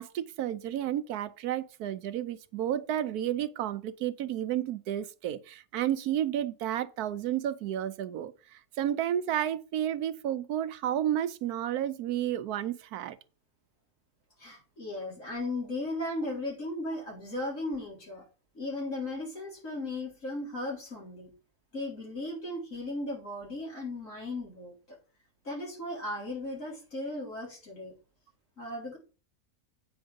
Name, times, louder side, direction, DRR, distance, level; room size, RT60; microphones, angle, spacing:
voice 1, 0.0-13.2, right 11 dB, 80° right, 1.1 m, -31 dB
voice 2, 14.4-18.2 18.5-21.3 21.7-24.7 25.4-27.9 28.6-29.0, left 2 dB, 55° left, 4.3 m, -36 dB
8.7 x 5.4 x 5.2 m
omnidirectional pair, 1.6 m